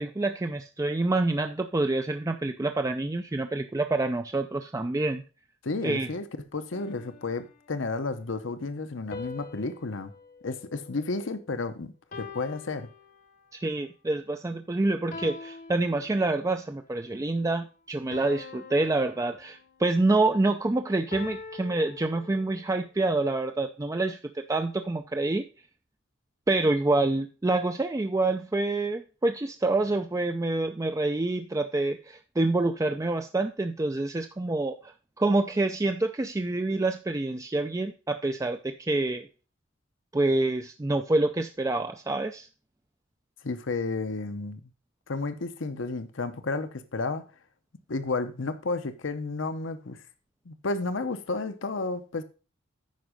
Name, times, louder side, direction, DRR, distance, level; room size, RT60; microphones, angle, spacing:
voice 1, 0.0-5.2 5.8-6.1 13.5-25.5 26.5-39.3 40.1-42.5, right 2 dB, 15° right, 0.4 m, -27 dB
voice 2, 5.6-6.2 6.5-10.1 10.4-12.9 43.4-44.6 45.1-47.2 47.9-50.0 50.5-52.2, left 3 dB, 70° left, 0.8 m, -32 dB
sound 1, 6.7-7.9 9.1-11.5 12.1-13.6 15.1-16.6 18.1-20.0 21.1-22.7, left 4 dB, 45° left, 1.0 m, -44 dB
9.4 x 5.3 x 5.0 m
head